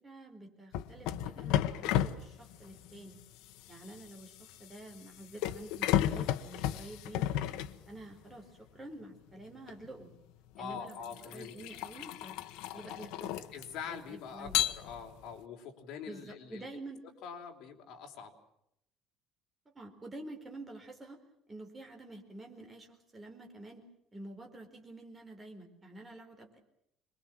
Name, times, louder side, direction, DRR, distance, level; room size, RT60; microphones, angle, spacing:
voice 1, 0.0-3.2 3.7-7.4 7.9-10.1 10.6-11.0 11.2-12.4 12.7-13.4 13.9-14.6 16.1-17.0 19.7-21.2 21.5-23.9 24.1-26.6, right 2 dB, 15° right, 3 dB, 4.4 m, -48 dB
sound 1, 0.7-8.3 9.7-9.9 10.6-13.9 14.5-15.3, left 12 dB, 80° left, 1.2 m, -34 dB
voice 2, 10.6-11.5 13.5-16.7 17.2-18.3, left 7 dB, 55° left, 2 dB, 4.3 m, -44 dB
27.0 x 22.0 x 7.5 m, 0.76 s
cardioid pair, 170°, 0 cm